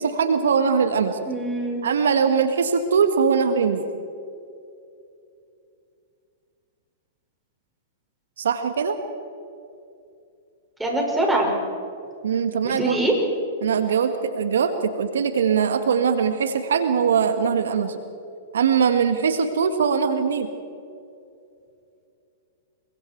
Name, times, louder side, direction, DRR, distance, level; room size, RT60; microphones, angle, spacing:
voice 1, 0.0-1.2 1.8-3.8 8.4-9.0 12.2-13.0 13.6-18.0 18.5-20.5, right 6 dB, 75° right, 9 dB, 1.5 m, -21 dB
voice 2, 1.3-1.8 10.8-11.5 12.6-13.2, right 1 dB, 5° right, -1 dB, 5.7 m, -23 dB
27.5 x 23.5 x 4.6 m, 2.6 s
hypercardioid pair, 115°, 0 cm